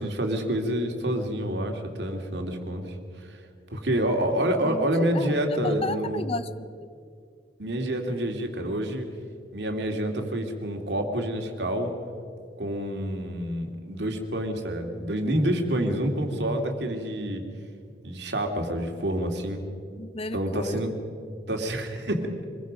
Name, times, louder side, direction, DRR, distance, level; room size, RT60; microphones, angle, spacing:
voice 1, 0.0-3.4 3.7-6.2 7.6-9.1 9.5-11.9 12.6-17.4 18.0-19.6 20.3-20.9 21.5-22.3, right 1 dB, 70° right, 3 dB, 2.5 m, -28 dB
voice 2, 4.6-6.9 20.0-20.8, left 2 dB, 35° left, 13 dB, 0.6 m, -34 dB
25.0 x 21.0 x 5.2 m, 2.3 s
head